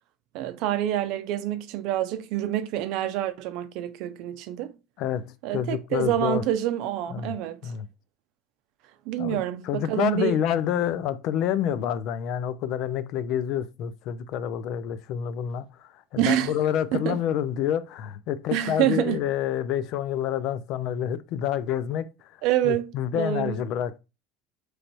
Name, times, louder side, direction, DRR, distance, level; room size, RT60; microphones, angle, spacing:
voice 1, 0.3-4.7 5.4-7.6 9.1-10.3 16.2-16.5 16.9-17.2 18.5-19.2 22.4-23.6, right 12 dB, 70° right, 0.5 m, -27 dB
voice 2, 5.0-6.5 7.1-7.4 7.6-7.9 9.2-22.4 22.6-24.0, left 10 dB, 65° left, 0.4 m, -28 dB
3.2 x 2.6 x 4.5 m
supercardioid pair, 95°, 0 cm